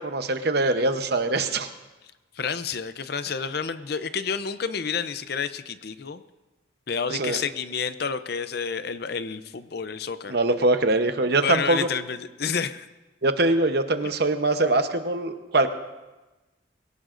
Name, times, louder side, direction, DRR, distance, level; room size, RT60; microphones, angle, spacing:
voice 1, 0.0-1.7 7.1-7.4 10.3-11.8 13.2-15.7, right 2 dB, 55° right, 8 dB, 0.9 m, -23 dB
voice 2, 2.4-6.2 6.9-10.4 11.4-12.9, left 6 dB, 50° left, 12 dB, 0.5 m, -30 dB
22.5 x 17.5 x 2.6 m, 1.1 s
head